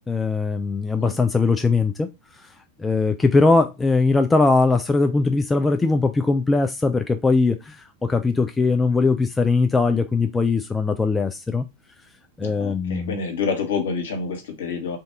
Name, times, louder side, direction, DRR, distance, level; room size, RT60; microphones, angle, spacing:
voice 1, 0.1-2.1 2.8-11.7 12.4-13.1, left 3 dB, 10° left, 0.4 m, -20 dB
voice 2, 12.4-15.0, left 5 dB, 60° left, 1.2 m, -28 dB
3.4 x 2.7 x 3.5 m
figure-of-eight pair, 90°, 0 cm